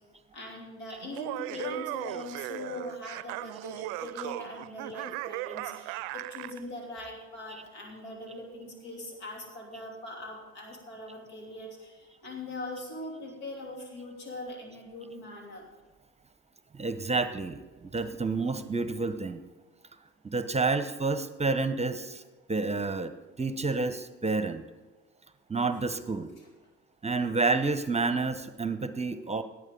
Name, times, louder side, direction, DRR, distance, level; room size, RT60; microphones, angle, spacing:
voice 1, 0.3-15.7 26.4-26.5, left 1 dB, 85° left, 0 dB, 3.2 m, -41 dB
Laughter, 1.0-6.6, right 19 dB, 75° right, 0.5 m, -37 dB
voice 2, 16.7-19.4 20.2-22.2 22.5-24.6 25.5-26.3 27.0-29.4, right 3 dB, 20° right, 11 dB, 0.9 m, -29 dB
17.5 x 8.6 x 3.8 m, 1.3 s
hypercardioid pair, 60°, 34 cm